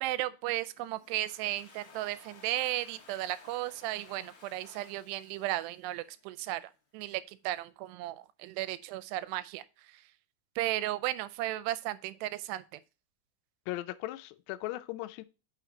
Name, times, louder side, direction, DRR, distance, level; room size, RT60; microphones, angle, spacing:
voice 1, 0.0-9.6 10.6-12.6, right 15 dB, 85° right, 2.6 m, -35 dB
Domestic sounds home sounds, 0.8-6.4, left 4 dB, 65° left, 1.1 m, -57 dB
voice 2, 13.7-15.2, left 16 dB, 85° left, 2.8 m, -38 dB
9.2 x 5.9 x 2.8 m
omnidirectional pair, 4.8 m